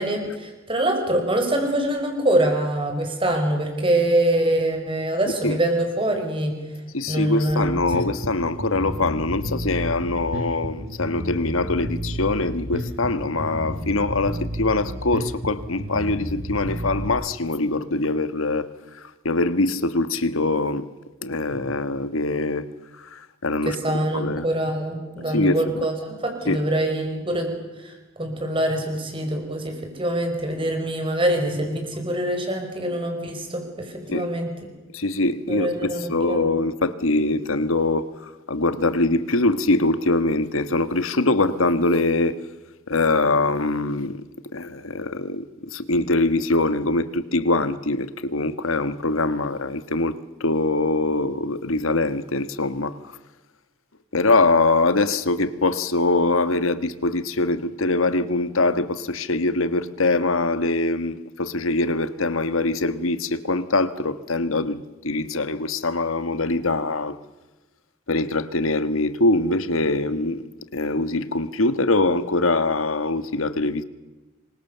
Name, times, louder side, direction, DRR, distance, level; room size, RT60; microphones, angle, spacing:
voice 1, 0.0-6.6 7.1-7.8 21.7-21.8 23.7-27.5 27.8-27.9 28.2-34.5 35.5-36.5, right 1 dB, 25° right, 5.4 m, -24 dB
voice 2, 6.9-18.7 19.2-20.9 21.2-22.7 23.1-23.8 24.1-24.4 25.3-25.9 26.5-26.6 34.1-34.3 34.9-42.3 42.9-44.2 44.5-45.4 45.7-53.0 54.1-67.1 68.1-70.4 70.7-73.8, left 2 dB, 80° left, 1.5 m, -23 dB
Bass guitar, 7.5-17.1, equal, 80° right, 7.4 m, -31 dB
27.5 x 24.0 x 6.9 m
head